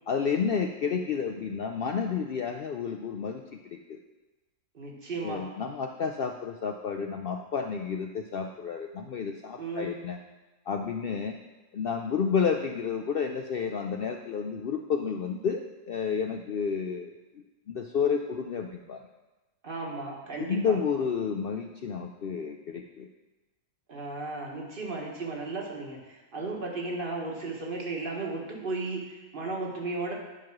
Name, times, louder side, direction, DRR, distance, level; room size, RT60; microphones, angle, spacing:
voice 1, 0.1-4.0 5.2-10.2 10.7-11.4 11.7-19.1 20.5-23.1, left 6 dB, 80° left, 4 dB, 0.5 m, -31 dB
voice 2, 4.7-5.4 9.6-10.0 19.6-20.8 23.9-30.1, right 3 dB, 40° right, -1 dB, 1.6 m, -35 dB
9.8 x 4.7 x 6.1 m, 1.1 s
omnidirectional pair, 1.6 m